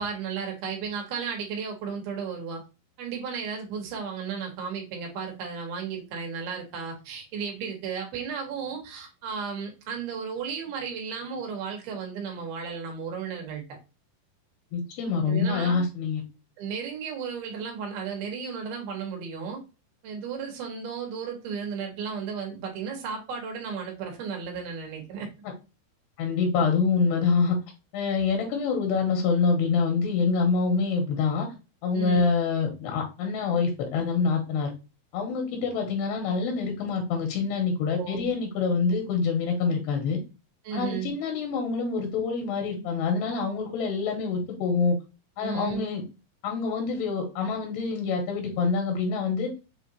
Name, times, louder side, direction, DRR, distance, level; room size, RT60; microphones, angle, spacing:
voice 1, 0.0-2.6 3.0-13.6 15.3-15.8 16.6-19.6 20.0-25.3 31.9-32.3 37.9-38.3 40.6-41.1 45.4-45.9, right 6 dB, 75° right, 1 dB, 3.0 m, -34 dB
voice 2, 14.7-16.2 26.2-27.6 27.9-31.5 31.8-34.7 35.1-40.2 40.7-45.0 45.4-46.0 46.4-49.5, left 5 dB, 85° left, 2 dB, 3.1 m, -26 dB
6.9 x 2.5 x 2.8 m, 0.29 s
omnidirectional pair, 4.6 m